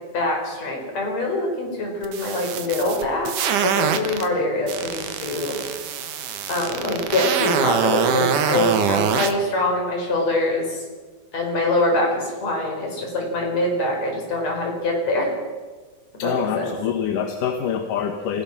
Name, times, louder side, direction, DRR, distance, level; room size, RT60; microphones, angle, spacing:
voice 1, 0.1-3.3 3.6-5.6 6.5-10.8 11.3-15.3 16.1-16.7, left 2 dB, 55° left, 1 dB, 5.9 m, -24 dB
sound 1, 2.0-4.3 4.7-9.3, right 8 dB, 75° right, 2.9 m, -24 dB
voice 2, 16.2-18.4, left 8 dB, 80° left, 5 dB, 2.8 m, -25 dB
27.5 x 16.0 x 6.1 m, 1.4 s
omnidirectional pair, 3.7 m